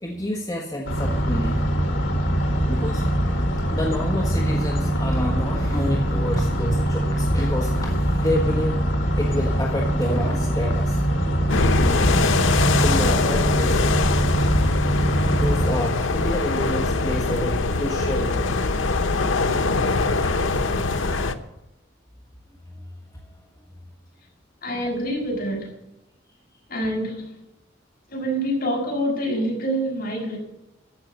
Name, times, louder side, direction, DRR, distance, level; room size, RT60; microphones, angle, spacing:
voice 1, 0.0-1.6 2.6-3.4 3.7-8.8 9.2-11.1 12.8-13.8 15.3-18.6 22.7-22.9 23.1-23.4, left 1 dB, 20° left, -1 dB, 1.4 m, -29 dB
sound 1, 0.9-15.7, right 1 dB, 75° left, 2.0 m, -23 dB
sound 2, 11.5-21.3, left 3 dB, 90° left, 0.9 m, -22 dB
voice 2, 24.6-25.7 26.7-27.3 28.1-30.4, equal, 50° left, -2 dB, 5.8 m, -26 dB
14.5 x 6.0 x 8.2 m, 0.93 s
head